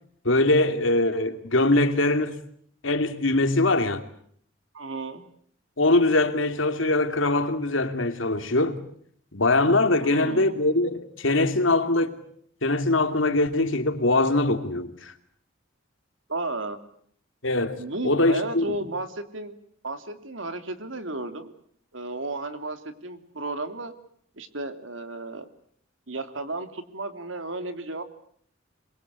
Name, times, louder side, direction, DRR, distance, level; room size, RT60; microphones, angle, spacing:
voice 1, 0.2-2.3 2.8-4.0 5.8-8.8 9.3-12.2 12.6-15.1 17.4-18.6, left 2 dB, 85° left, 2.6 m, -22 dB
voice 2, 4.7-5.2 10.0-10.6 16.3-16.8 17.8-19.6 19.8-21.5 21.9-23.9 24.4-25.5 26.1-28.0, right 2 dB, 80° right, 2.9 m, -33 dB
26.5 x 22.5 x 8.3 m
head